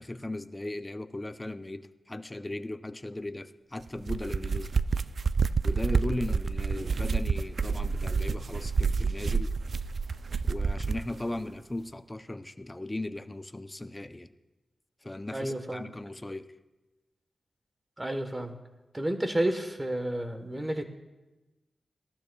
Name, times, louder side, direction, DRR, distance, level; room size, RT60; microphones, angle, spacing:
voice 1, 0.0-4.8 5.6-9.5 10.4-14.3 15.0-16.5, left 2 dB, 15° left, 10 dB, 0.5 m, -37 dB
sound 1, 3.9-11.1, right 5 dB, 55° right, 0.3 m, -28 dB
voice 2, 15.3-15.9 18.0-18.6 18.9-20.8, right 1 dB, 15° right, 7 dB, 1.1 m, -31 dB
19.0 x 14.0 x 2.3 m, 1.1 s
wide cardioid pair, 125°, 0 cm